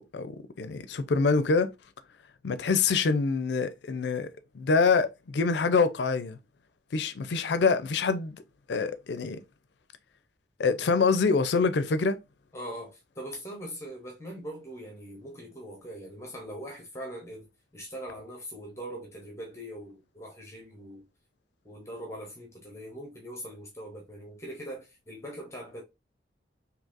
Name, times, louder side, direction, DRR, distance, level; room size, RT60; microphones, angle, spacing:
voice 1, 0.0-1.7 2.4-4.3 4.5-6.4 6.9-8.4 8.7-9.4 10.6-12.2, left 4 dB, 70° left, 0.5 m, -25 dB
voice 2, 12.5-21.1 21.6-25.8, equal, 15° left, 0.8 m, -41 dB
3.9 x 2.8 x 2.5 m
head